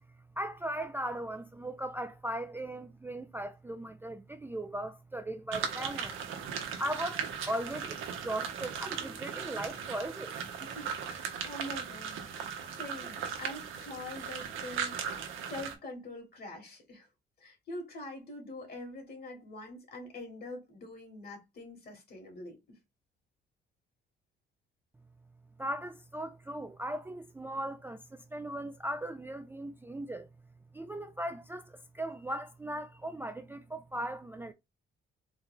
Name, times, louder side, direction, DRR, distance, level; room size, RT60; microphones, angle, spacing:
voice 1, 0.4-6.2 6.8-10.4 25.6-30.3 30.7-34.5, right 1 dB, 10° right, 0.4 m, -38 dB
sound 1, 5.5-15.7, right 7 dB, 90° right, 0.9 m, -38 dB
voice 2, 10.6-12.4 12.7-15.2 15.5-17.1 17.4-22.8, left 1 dB, 50° left, 2.2 m, -44 dB
4.0 x 2.4 x 3.6 m
cardioid pair, 90°, 20 cm